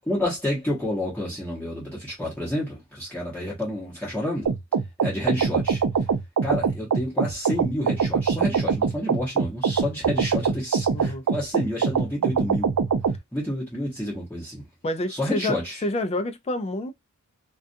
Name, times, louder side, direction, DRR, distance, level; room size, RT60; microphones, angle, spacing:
voice 1, 0.1-4.5 5.0-5.8 6.4-12.7 13.3-14.7 15.1-15.8, left 1 dB, 5° left, 0.9 m, -29 dB
sound 1, 4.5-13.2, right 6 dB, 80° right, 0.4 m, -23 dB
voice 2, 10.9-11.2 14.8-15.6 15.8-16.9, left 2 dB, 30° left, 0.4 m, -28 dB
2.4 x 2.3 x 2.6 m
head